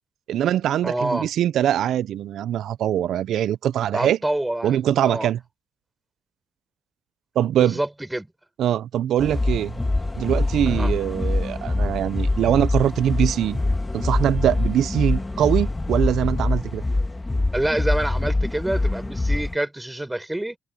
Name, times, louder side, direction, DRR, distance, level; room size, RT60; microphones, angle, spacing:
voice 1, 0.3-4.2 4.6-5.4 7.4-7.8 8.6-9.7 10.2-13.6 13.9-16.8, right 11 dB, 75° right, 0.5 m, -22 dB
voice 2, 0.8-1.3 3.9-5.3 7.6-8.3 10.7-10.9 17.5-20.6, right 1 dB, 10° right, 5.4 m, -27 dB
sound 1, 9.2-19.5, left 2 dB, 15° left, 1.5 m, -24 dB
cardioid pair, 90°, 0 cm